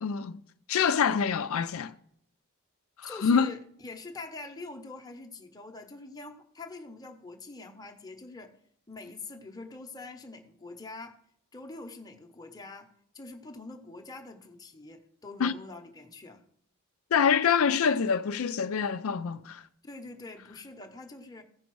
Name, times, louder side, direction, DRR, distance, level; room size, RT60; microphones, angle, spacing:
voice 1, 0.0-0.4 0.7-1.9 3.0-3.5 15.4-15.5 17.1-19.6, left 6 dB, 70° left, 0.4 m, -26 dB
voice 2, 3.0-8.5 8.9-11.2 11.5-16.4 19.8-21.4, left 3 dB, 15° left, 0.8 m, -44 dB
15.5 x 5.2 x 4.6 m
head